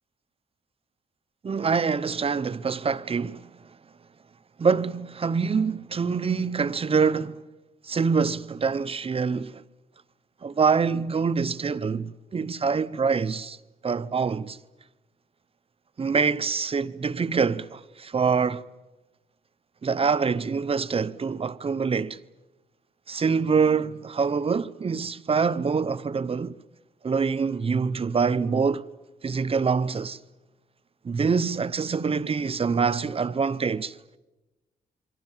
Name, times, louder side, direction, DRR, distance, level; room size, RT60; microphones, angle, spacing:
voice 1, 1.4-3.5 4.6-7.4 7.9-9.6 10.4-13.6 13.8-14.6 16.0-18.6 19.8-22.2 23.1-26.5 27.0-28.9 29.2-30.2 31.0-33.9, right 5 dB, 40° right, 0.8 m, -25 dB
28.0 x 24.0 x 7.4 m
cardioid pair, 100°, 16 cm